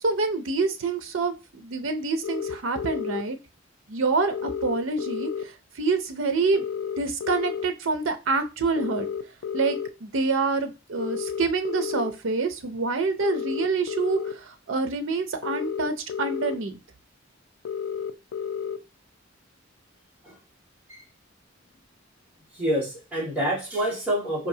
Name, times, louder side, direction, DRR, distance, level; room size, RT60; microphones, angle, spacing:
voice 1, 0.0-3.4 3.9-5.5 5.8-6.7 7.0-9.1 9.5-16.8, right 4 dB, 70° right, 7 dB, 0.6 m, -27 dB
sound 1, 2.2-3.2 4.3-5.4 6.5-7.7 8.8-9.9 11.0-12.1 13.2-14.3 15.4-16.6 17.6-18.8, left 7 dB, 90° left, 0.4 m, -31 dB
voice 2, 22.5-24.5, right 1 dB, 10° right, -6 dB, 1.9 m, -27 dB
4.4 x 2.7 x 2.7 m, 0.29 s
head